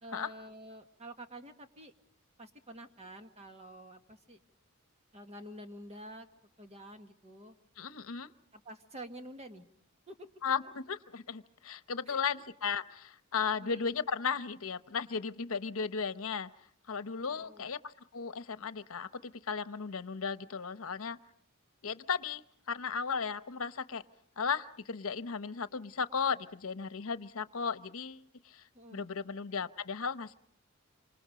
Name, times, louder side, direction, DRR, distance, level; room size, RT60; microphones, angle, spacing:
voice 1, 0.0-1.9 2.4-4.4 5.1-6.3 6.6-7.5 8.5-9.6 10.1-10.3 12.1-12.2 13.6-13.9 17.3-17.7 28.7-29.1, right 1 dB, 30° right, 6 dB, 1.7 m, -48 dB
voice 2, 7.8-8.3 10.4-16.5 16.9-21.2 21.8-24.0 24.4-28.6 28.9-30.3, left 6 dB, 75° left, 13 dB, 0.9 m, -35 dB
27.5 x 25.5 x 5.1 m, 0.64 s
head